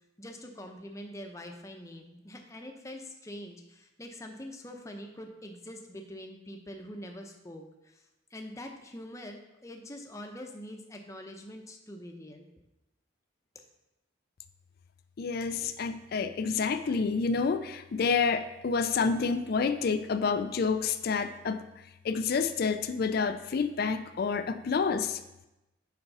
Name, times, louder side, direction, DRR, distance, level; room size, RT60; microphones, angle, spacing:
voice 1, 0.2-8.0 8.3-12.5, left 1 dB, 15° left, 3 dB, 0.7 m, -44 dB
voice 2, 15.2-21.6 22.0-25.2, left 5 dB, 50° left, 10 dB, 0.4 m, -28 dB
7.1 x 4.3 x 5.5 m, 0.92 s
head